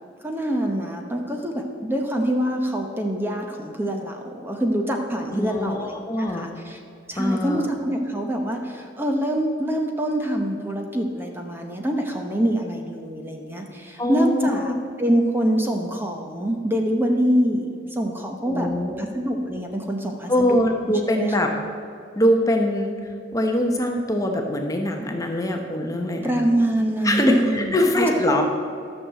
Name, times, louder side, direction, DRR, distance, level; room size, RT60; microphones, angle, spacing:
voice 1, 0.2-6.8 7.1-18.7 19.0-20.6 21.2-21.5 26.2-28.4, right 1 dB, 10° right, 2 dB, 0.8 m, -25 dB
voice 2, 5.3-6.5 7.2-7.7 14.0-14.8 18.4-19.1 20.3-21.5 22.2-22.9 23.3-26.3 27.0-28.4, left 1 dB, 15° left, 3 dB, 0.9 m, -22 dB
13.0 x 6.4 x 7.5 m, 2.5 s
head